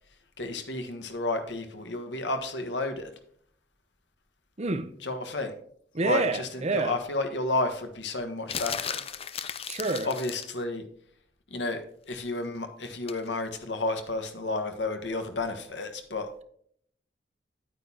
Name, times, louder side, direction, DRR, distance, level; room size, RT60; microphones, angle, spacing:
voice 1, 0.4-3.1 5.0-5.5 6.0-8.9 10.0-10.8 11.5-16.3, left 2 dB, 70° left, 1.4 m, -31 dB
voice 2, 4.6-4.9 5.9-7.0 9.7-10.1, right 3 dB, 40° right, 0.8 m, -28 dB
sound 1, 8.5-10.6 13.1-13.3, left 8 dB, 35° left, 0.5 m, -35 dB
9.1 x 9.0 x 2.8 m
head